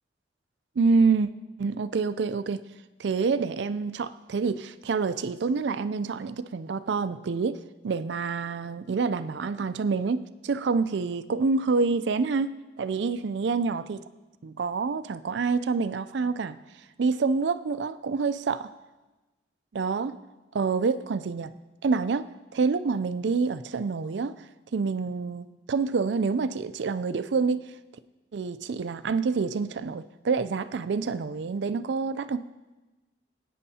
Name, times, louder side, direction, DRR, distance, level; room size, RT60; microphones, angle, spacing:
voice 1, 0.8-1.3 1.6-2.6 3.0-7.6 7.8-12.5 12.8-14.0 14.4-16.6 17.0-18.7 19.7-20.2 20.5-21.5 21.8-22.3 22.5-24.3 24.7-27.6 28.3-32.4, right 4 dB, 75° right, 13 dB, 0.4 m, -27 dB
18.5 x 9.3 x 2.8 m, 1.1 s
head